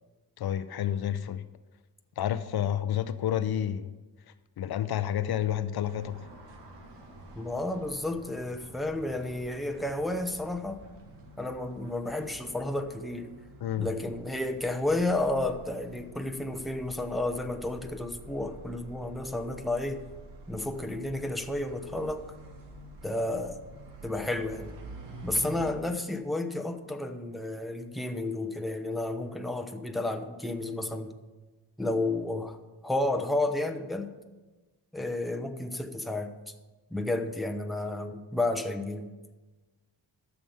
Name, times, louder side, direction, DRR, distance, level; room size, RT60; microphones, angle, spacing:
voice 1, 0.4-1.4 2.2-3.9 4.6-6.2 13.6-13.9, left 10 dB, 65° left, 12 dB, 0.6 m, -30 dB
sound 1, 5.8-25.7, right 1 dB, 85° right, 1.8 m, -48 dB
voice 2, 7.4-10.8 11.4-13.3 13.8-20.0 20.5-22.3 23.0-23.6 24.0-24.8 25.2-31.1 31.8-32.6 32.8-34.1 34.9-36.3 36.9-39.1, left 2 dB, ahead, 6 dB, 0.7 m, -31 dB
12.5 x 7.0 x 5.7 m, 1.2 s
cardioid pair, 120°, 41 cm